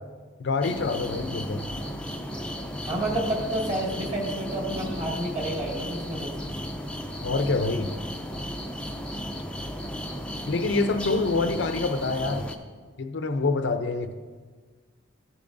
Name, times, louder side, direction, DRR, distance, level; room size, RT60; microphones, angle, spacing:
voice 1, 0.4-1.7 7.2-7.9 10.5-12.4 13.0-14.1, left 3 dB, 60° left, 7 dB, 0.5 m, -26 dB
sound 1, 0.6-12.5, equal, 5° left, 0.5 m, -34 dB
voice 2, 2.9-6.3, right 1 dB, 30° right, -3 dB, 2.0 m, -29 dB
14.0 x 6.9 x 2.6 m, 1.5 s
head